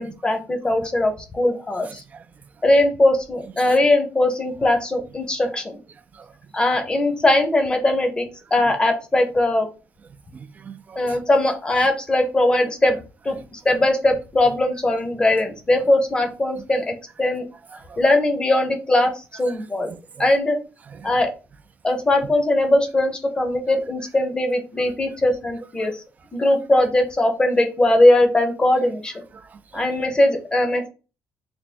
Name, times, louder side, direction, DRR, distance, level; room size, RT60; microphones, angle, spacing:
voice 1, 0.0-2.0 2.6-5.8 6.5-9.7 11.0-13.0 13.2-17.5 18.0-19.9 20.2-20.6 21.0-21.3 21.8-25.9 26.3-29.1 29.7-30.9, left 1 dB, 15° left, 0.7 m, -20 dB
voice 2, 10.3-11.2 17.7-18.0 20.2-20.3 21.0-21.1 25.8-25.9 29.3-29.8, right 6 dB, 30° right, 0.4 m, -42 dB
3.4 x 2.1 x 4.2 m
cardioid pair, 140°, 5 cm